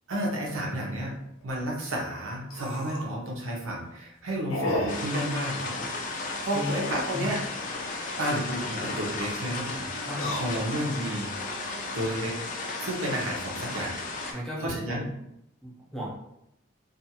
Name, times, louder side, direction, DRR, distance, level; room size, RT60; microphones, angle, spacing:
voice 1, 0.1-1.1 1.4-7.4 8.2-11.3 11.9-12.4 12.8-15.1, right 1 dB, 80° right, -1 dB, 0.8 m, -32 dB
sound 1, 0.8-0.9 1.4-1.5 1.7-1.8 2.4-3.2 3.6-3.9 4.5-5.1 6.5-7.3 8.4-9.0 10.0-10.9 11.5-12.0, left 1 dB, 80° left, 0.6 m, -34 dB
sound 2, 4.9-14.3, left 3 dB, 40° left, 0.4 m, -35 dB
Wind instrument woodwind instrument, 7.4-13.6, equal, 50° right, 0.8 m, -47 dB
voice 2, 10.0-10.4 11.8-11.9 14.3-15.1 15.6-16.1, equal, 5° left, -6 dB, 0.8 m, -35 dB
2.4 x 2.4 x 2.8 m, 0.81 s
head